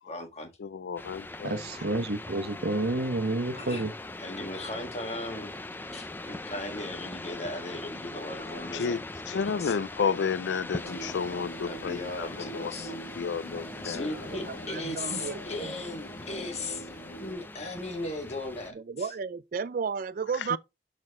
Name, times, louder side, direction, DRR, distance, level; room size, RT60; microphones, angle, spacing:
voice 1, 0.1-0.5 3.6-3.8 4.2-5.5 5.9-9.8 11.7-12.9 13.8-16.9 17.2-19.1, left 2 dB, 40° left, 1.7 m, -37 dB
voice 2, 0.6-1.5 8.7-9.0 9.3-12.3 12.5-14.2 14.5-14.6 20.5-20.6, left 6 dB, 85° left, 0.4 m, -31 dB
sound 1, 1.0-18.7, left 2 dB, 10° left, 0.5 m, -41 dB
voice 3, 1.4-3.9, right 2 dB, 65° right, 1.0 m, -29 dB
sound 2, 10.8-17.3, right 1 dB, 55° left, 2.0 m, -44 dB
voice 4, 14.3-15.4 18.7-20.6, right 6 dB, 50° right, 0.4 m, -33 dB
6.3 x 6.3 x 3.6 m
head